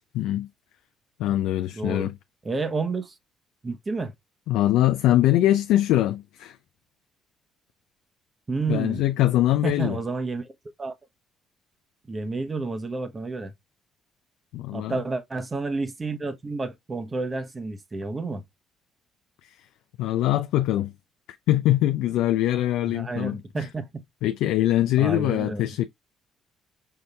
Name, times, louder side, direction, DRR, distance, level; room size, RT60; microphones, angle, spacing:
voice 1, 0.1-0.5 1.2-2.1 4.5-6.6 8.7-10.0 14.5-15.0 19.5-19.6 20.0-20.9 21.5-23.7 24.2-25.9, left 14 dB, 80° left, 0.4 m, -23 dB
voice 2, 1.7-2.1 2.4-3.2 3.6-4.1 8.5-9.0 9.6-10.5 10.8-10.9 12.1-13.5 14.7-18.4 22.8-24.0 25.0-25.7, right 3 dB, 30° right, 1.0 m, -30 dB
5.8 x 2.6 x 3.4 m
supercardioid pair, 70°, 0 cm